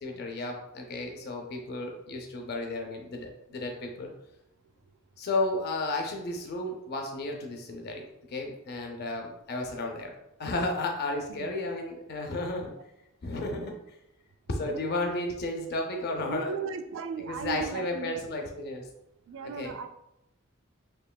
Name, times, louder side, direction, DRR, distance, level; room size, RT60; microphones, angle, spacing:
voice 1, 0.0-4.1 5.2-12.7 13.2-14.0 14.5-16.5 17.2-18.9 19.4-19.8, left 2 dB, 50° left, 2 dB, 0.5 m, -33 dB
voice 2, 16.3-18.2 19.3-19.9, right 6 dB, 65° right, 8 dB, 0.3 m, -37 dB
4.5 x 2.9 x 2.2 m, 0.86 s
head